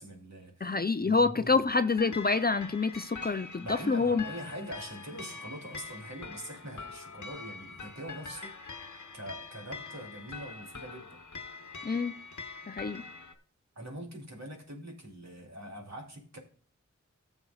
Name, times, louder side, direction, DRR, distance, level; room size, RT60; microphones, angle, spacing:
voice 1, 0.0-0.8 1.0-1.6 3.6-11.2 13.8-16.4, right 1 dB, 65° right, 2.6 m, -43 dB
voice 2, 0.6-4.2 11.8-12.1 12.7-13.0, left 4 dB, 35° left, 0.5 m, -27 dB
sound 1, 1.7-13.3, left 4 dB, 80° left, 1.1 m, -44 dB
14.5 x 7.1 x 2.3 m
wide cardioid pair, 45°, 29 cm